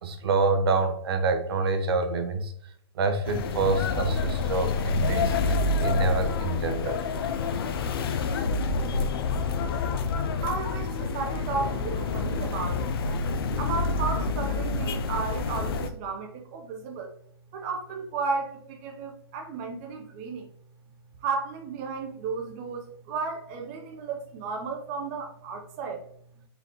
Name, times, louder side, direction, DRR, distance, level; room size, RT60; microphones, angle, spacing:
voice 1, 0.0-2.5 2.9-7.0, right 3 dB, 65° right, 6 dB, 0.7 m, -27 dB
sound 1, 3.3-15.9, left 4 dB, 60° left, 0.5 m, -28 dB
voice 2, 10.1-13.1 13.6-17.1 17.5-20.5 21.2-26.4, right 4 dB, 30° right, 3 dB, 0.6 m, -34 dB
4.0 x 3.4 x 2.9 m, 0.64 s
hypercardioid pair, 145°, 14 cm